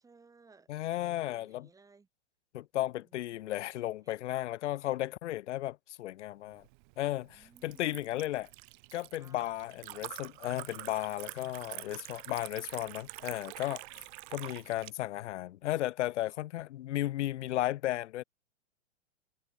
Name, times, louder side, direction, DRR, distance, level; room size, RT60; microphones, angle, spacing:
voice 1, 0.0-0.7 1.0-2.1 2.9-3.5 4.0-4.2 7.3-8.3 9.1-9.5 13.9-14.1, right 4 dB, 10° right, 2.7 m, -62 dB
voice 2, 0.7-1.7 2.5-6.6 7.0-8.5 8.9-13.8 14.3-18.2, left 14 dB, 75° left, 0.6 m, -34 dB
Liquid, 6.5-14.9, right 29 dB, 40° right, 1.4 m, -47 dB
hypercardioid pair, 130°, 36 cm